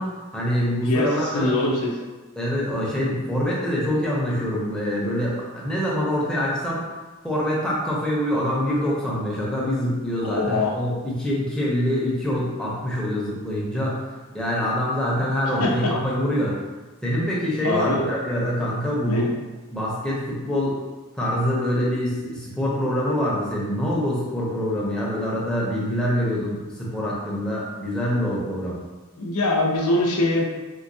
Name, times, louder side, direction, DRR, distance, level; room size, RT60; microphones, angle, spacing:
voice 1, 0.0-1.5 2.4-6.9 7.2-14.0 14.3-16.6 17.0-19.3 19.7-20.8 21.2-28.8, equal, 5° left, -6 dB, 0.6 m, -25 dB
voice 2, 0.8-1.9 10.2-10.7 15.6-15.7 17.6-18.1 19.0-19.3 29.2-30.5, left 2 dB, 90° left, -1 dB, 0.6 m, -23 dB
4.4 x 2.2 x 2.6 m, 1.2 s
head